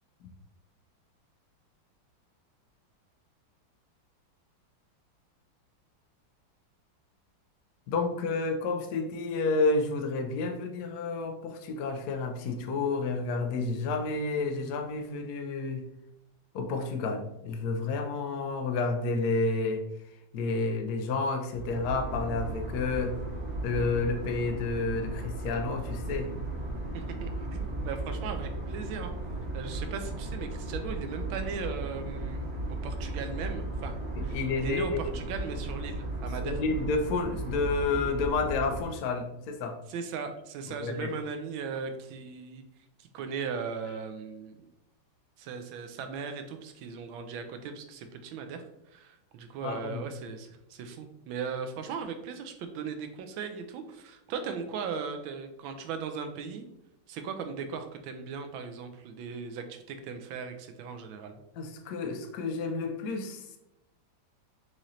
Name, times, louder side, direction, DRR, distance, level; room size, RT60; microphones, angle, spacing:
voice 1, 7.9-15.8 16.5-19.8 20.3-23.2 23.6-26.3 34.1-35.0 36.4-39.8 40.8-41.2 49.6-50.0 61.6-63.6, left 3 dB, 70° left, 5 dB, 1.0 m, -30 dB
sound 1, 21.5-38.8, right 2 dB, 55° right, 2.2 m, -36 dB
voice 2, 26.9-29.1 29.5-34.0 34.2-36.6 39.9-42.6 43.0-44.7 45.4-56.6 57.1-61.4, right 6 dB, 85° right, 7 dB, 1.4 m, -38 dB
6.3 x 3.0 x 2.7 m, 0.86 s
omnidirectional pair, 2.2 m